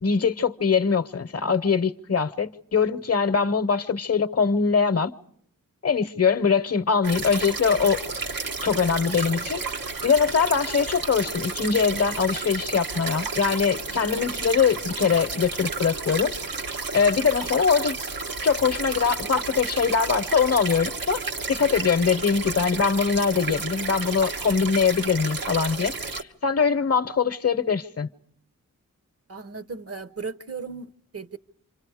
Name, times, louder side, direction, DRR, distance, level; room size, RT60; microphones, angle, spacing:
voice 1, 0.0-5.1 5.8-8.0 8.6-9.6 10.0-16.3 16.9-18.0 18.4-21.2 21.5-28.1, left 6 dB, 45° left, 0.8 m, -22 dB
sound 1, 7.0-26.2, right 4 dB, 90° right, 1.5 m, -32 dB
voice 2, 29.3-31.4, right 5 dB, 45° right, 0.8 m, -36 dB
28.0 x 25.5 x 4.9 m
wide cardioid pair, 75°, 33 cm